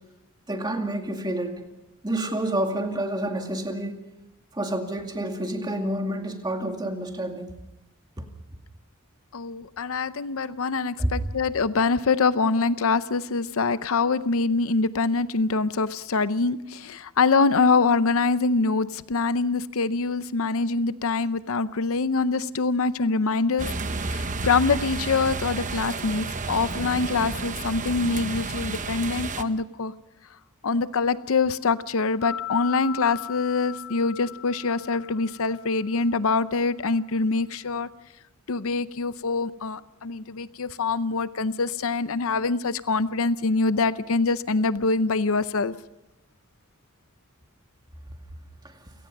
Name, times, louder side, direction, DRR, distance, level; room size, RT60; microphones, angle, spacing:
voice 1, 0.5-1.6 2.0-4.0 4.5-7.5 11.0-11.1 48.6-48.7, right 1 dB, 20° right, 2.3 m, -28 dB
voice 2, 9.3-23.7 24.0-29.9 30.6-37.9 38.5-45.7, left 4 dB, 65° left, 0.7 m, -24 dB
sound 1, 23.6-29.4, right 3 dB, 35° right, 1.0 m, -31 dB
sound 2, 32.2-36.1, left 11 dB, 90° left, 7.2 m, -38 dB
28.5 x 17.5 x 5.4 m
head